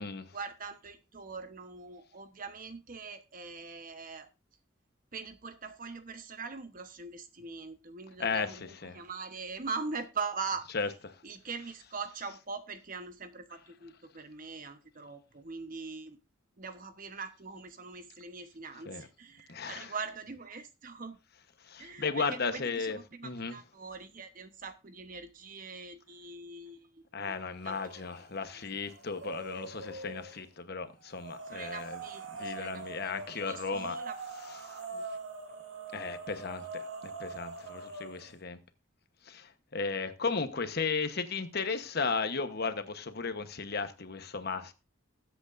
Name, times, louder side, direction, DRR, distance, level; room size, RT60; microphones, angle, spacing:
voice 1, 0.3-4.3 5.1-10.7 11.2-16.2 16.6-21.2 21.8-27.4 27.6-27.9 28.5-28.6 31.5-34.2 34.9-35.1, right 4 dB, 45° right, 1.0 m, -42 dB
voice 2, 8.2-9.0 10.7-11.2 18.9-19.1 19.5-19.9 21.6-23.6 27.1-32.0 32.3-34.0 34.6-34.8 35.9-38.6 39.2-44.7, left 4 dB, 50° left, 1.0 m, -35 dB
sound 1, 27.6-28.2 28.6-30.4 31.1-38.3, right 3 dB, 70° right, 2.3 m, -43 dB
20.0 x 8.1 x 2.6 m
head